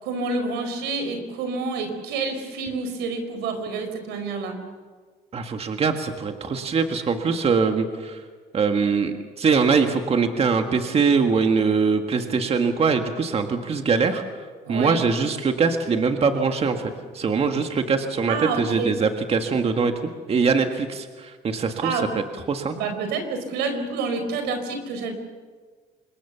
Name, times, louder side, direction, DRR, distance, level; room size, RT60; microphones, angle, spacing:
voice 1, 0.0-4.6 14.7-15.0 18.3-18.9 21.8-22.1 22.8-25.1, right 4 dB, 90° right, 7 dB, 4.6 m, -28 dB
voice 2, 5.3-8.2 8.5-14.2 14.7-19.9 20.3-22.0 22.5-22.8, right 5 dB, 35° right, 5 dB, 1.7 m, -22 dB
26.5 x 21.5 x 7.0 m, 1.5 s
cardioid pair, 110°, 17 cm